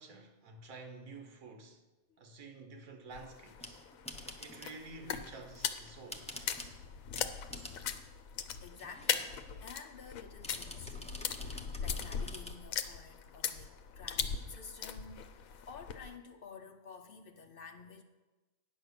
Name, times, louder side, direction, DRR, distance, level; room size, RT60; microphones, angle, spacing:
voice 1, 0.0-1.8 2.2-3.8 4.4-6.3, right 3 dB, 75° right, 1.4 m, -50 dB
sound 1, 3.1-16.1, left 7 dB, 75° left, 1.0 m, -40 dB
sound 2, 3.5-4.8 5.4-6.8 7.1-7.8 8.7-9.5 10.4-12.6, left 1 dB, 5° left, 0.5 m, -48 dB
voice 2, 8.6-9.3 9.6-11.1 11.4-18.0, left 5 dB, 55° left, 0.6 m, -52 dB
9.8 x 6.1 x 6.5 m
omnidirectional pair, 1.5 m